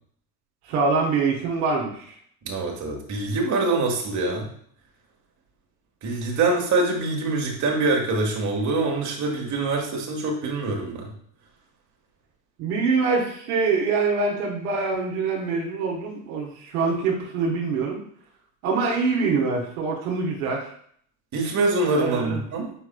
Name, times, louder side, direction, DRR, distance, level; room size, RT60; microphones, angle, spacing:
voice 1, 0.6-2.1 12.6-18.0 18.6-20.6 22.0-22.4, right 4 dB, 75° right, -2 dB, 1.2 m, -24 dB
voice 2, 2.4-4.5 6.0-11.1 21.3-22.7, right 3 dB, 40° right, 0 dB, 1.4 m, -24 dB
5.2 x 4.6 x 2.2 m, 0.63 s
hypercardioid pair, 75°, 45 cm